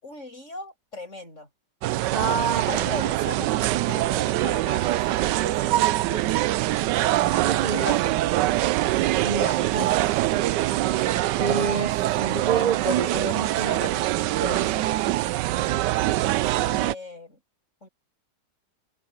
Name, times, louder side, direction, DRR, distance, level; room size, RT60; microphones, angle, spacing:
voice 1, 0.0-1.5 2.5-6.5 7.2-8.2 9.6-9.9 16.7-17.4 17.8-17.9, left 2 dB, 45° left, 8.1 m, -39 dB
sound 1, 1.8-16.9, right 15 dB, 90° right, 1.2 m, -24 dB
voice 2, 2.1-2.8 7.5-8.1 9.2-10.0 11.0-14.0 14.4-14.8, right 4 dB, 45° right, 0.6 m, -29 dB
open air
omnidirectional pair, 1.8 m